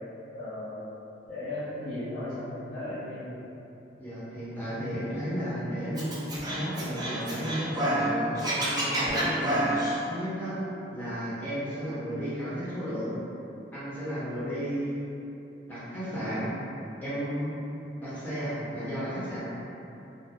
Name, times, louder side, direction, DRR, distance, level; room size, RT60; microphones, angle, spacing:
voice 1, 0.3-0.8 1.3-3.5, left 1 dB, 45° left, -13 dB, 0.8 m, -36 dB
voice 2, 4.0-9.6 10.1-10.6 10.9-13.1 13.7-15.1 15.7-16.5 17.0-17.5 18.0-19.4, equal, 10° left, -12 dB, 0.9 m, -33 dB
Scratching (performance technique), 6.0-8.1 8.4-10.0, right 1 dB, 20° right, 0.5 m, -28 dB
2.7 x 2.0 x 3.3 m, 2.8 s
head